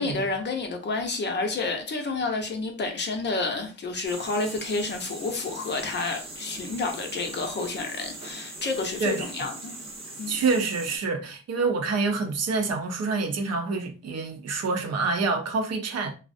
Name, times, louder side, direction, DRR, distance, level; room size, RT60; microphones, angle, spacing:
voice 1, 0.0-9.8 10.2-10.4, left 3 dB, 35° left, 0.6 m, -30 dB
sound 1, 4.0-11.0, right 2 dB, 20° right, 0.8 m, -40 dB
voice 2, 10.3-16.1, right 4 dB, 55° right, 0.6 m, -27 dB
2.4 x 2.0 x 2.5 m
cardioid pair, 90°, 30 cm